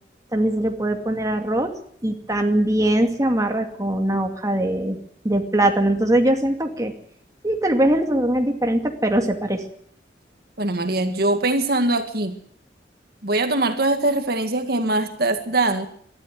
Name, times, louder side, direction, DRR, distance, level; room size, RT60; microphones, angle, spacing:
voice 1, 0.3-1.7 2.0-5.0 5.2-6.9 7.4-9.6, right 1 dB, 20° right, 4 dB, 2.4 m, -21 dB
voice 2, 10.6-12.3 13.2-15.9, right 2 dB, 60° right, 7 dB, 2.0 m, -22 dB
22.5 x 13.0 x 9.5 m, 0.63 s
head